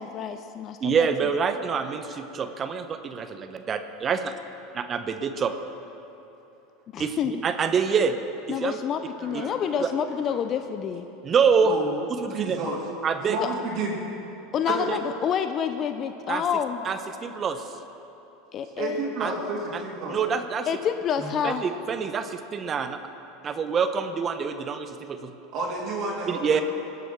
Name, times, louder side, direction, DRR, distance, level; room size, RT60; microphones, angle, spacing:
voice 1, 0.0-1.1 6.9-7.4 8.5-11.1 13.4-13.5 14.5-16.8 18.5-19.0 20.7-21.6, left 8 dB, 40° left, 8 dB, 0.7 m, -28 dB
voice 2, 0.8-4.3 4.7-5.5 7.0-8.1 8.5-8.8 9.8-9.9 11.2-11.7 12.1-12.6 13.0-13.4 14.9-15.0 16.3-16.4 16.8-17.7 19.2-19.3 19.7-19.8 20.1-20.7 21.4-23.0 23.4-25.3 26.3-26.6, right 6 dB, 35° right, 8 dB, 0.9 m, -26 dB
voice 3, 9.2-9.7 10.3-10.4 11.6-11.9 12.3-12.8 13.3-13.9 14.7-14.9 18.8-20.2 21.2-21.3 25.5-26.6, right 3 dB, 50° right, -4 dB, 3.0 m, -31 dB
20.5 x 8.1 x 6.1 m, 2.9 s
hypercardioid pair, 85°, 0 cm